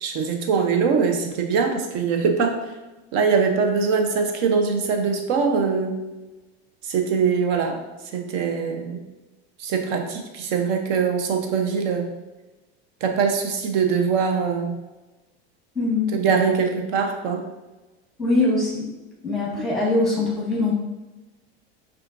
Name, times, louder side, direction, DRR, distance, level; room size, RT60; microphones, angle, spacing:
voice 1, 0.0-2.5 3.1-6.0 6.8-7.8 8.1-9.0 9.6-12.1 13.0-14.8 16.1-17.4, right 5 dB, 55° right, 4 dB, 0.8 m, -22 dB
voice 2, 15.7-16.1 18.2-18.9 19.2-20.7, left 2 dB, ahead, -4 dB, 1.3 m, -22 dB
5.5 x 2.5 x 2.6 m, 1.1 s
supercardioid pair, 125°, 32 cm